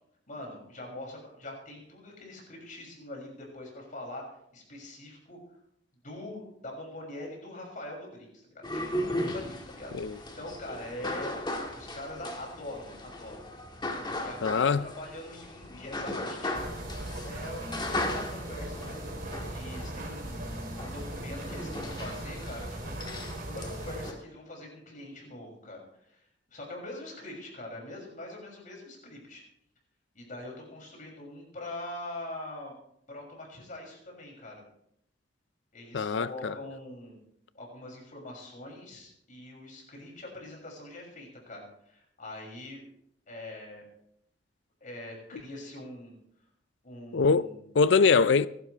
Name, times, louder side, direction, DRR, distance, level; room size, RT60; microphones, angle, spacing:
voice 1, 0.3-5.4 6.0-8.8 9.2-11.4 11.8-13.4 14.2-16.5 17.2-17.6 18.0-19.0 19.5-20.4 20.8-23.2 23.4-25.8 26.1-26.2 26.5-29.4 30.1-32.7 33.1-34.6 35.7-37.2 37.5-42.8 43.3-43.9 44.8-46.1 46.8-47.6, left 1 dB, 45° left, 6.4 m, -43 dB
sound 1, 8.6-24.1, left 1 dB, 25° left, 2.0 m, -37 dB
voice 2, 14.4-14.9 35.9-36.5 47.1-47.5 47.7-48.5, left 5 dB, 70° left, 0.5 m, -23 dB
sound 2, 16.5-24.1, right 1 dB, 50° right, 2.7 m, -39 dB
26.0 x 12.5 x 3.3 m
head